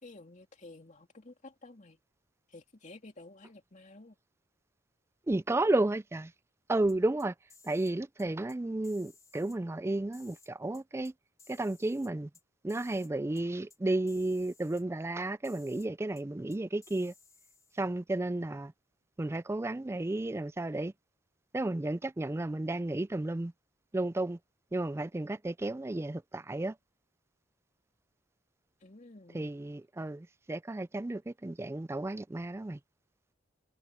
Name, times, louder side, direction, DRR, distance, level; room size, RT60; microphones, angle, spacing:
voice 1, 0.0-2.0 2.5-4.2 28.8-29.6, left 2 dB, 40° left, 2.7 m, -52 dB
voice 2, 5.3-6.3 6.7-7.3 7.6-11.1 11.5-12.3 12.6-17.1 17.8-18.7 19.2-20.9 21.5-23.5 23.9-24.4 24.7-26.8 29.3-32.8, right 2 dB, 15° right, 0.4 m, -32 dB
sound 1, 6.9-7.9 8.2-8.6 8.8-9.6 10.1-11.1 11.4-12.4 12.7-13.1 13.3-13.4 13.7-13.8 14.1-14.8 15.4-15.9 16.1-16.2 16.5-17.8, left 4 dB, 20° left, 5.0 m, -60 dB
head